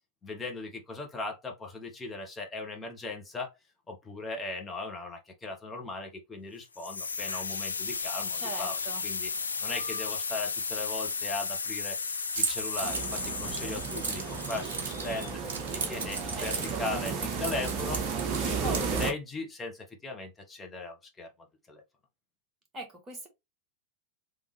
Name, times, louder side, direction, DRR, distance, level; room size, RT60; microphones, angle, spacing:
voice 1, 0.2-3.5 3.9-9.3 9.6-15.4 15.7-18.0 18.3-21.3 21.7-21.8, left 3 dB, 15° left, 1.3 m, -38 dB
sound 1, 6.7-15.6, left 5 dB, 75° left, 0.3 m, -34 dB
voice 2, 8.3-9.0 16.3-16.8 18.6-19.1 22.7-23.3, right 3 dB, 20° right, 1.6 m, -40 dB
Keys jangling, 12.3-19.1, right 4 dB, 55° right, 1.6 m, -36 dB
sound 2, 12.8-19.1, right 5 dB, 35° right, 0.9 m, -34 dB
3.7 x 3.4 x 3.1 m
figure-of-eight pair, 90°, 0 cm